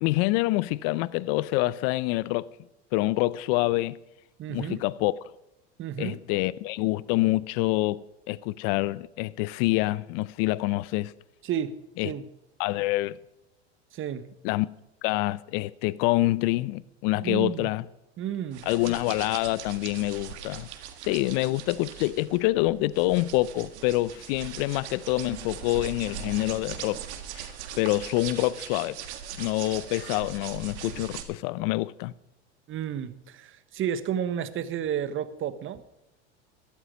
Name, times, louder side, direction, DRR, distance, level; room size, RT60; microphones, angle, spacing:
voice 1, 0.0-2.5 2.9-4.0 4.5-5.1 6.0-11.1 12.0-12.1 12.6-13.2 14.4-14.7 15.0-17.8 18.7-20.7 21.0-27.0 27.3-27.5 27.8-29.0 29.4-32.1, left 19 dB, 60° left, 0.7 m, -26 dB
voice 2, 4.4-4.8 5.8-6.2 11.4-11.8 12.0-12.2 13.9-14.3 17.1-17.7 18.2-18.6 32.7-35.8, right 9 dB, 35° right, 1.2 m, -31 dB
sound 1, 18.5-31.2, right 9 dB, 80° right, 1.9 m, -40 dB
14.0 x 12.0 x 5.2 m
hypercardioid pair, 100°, 33 cm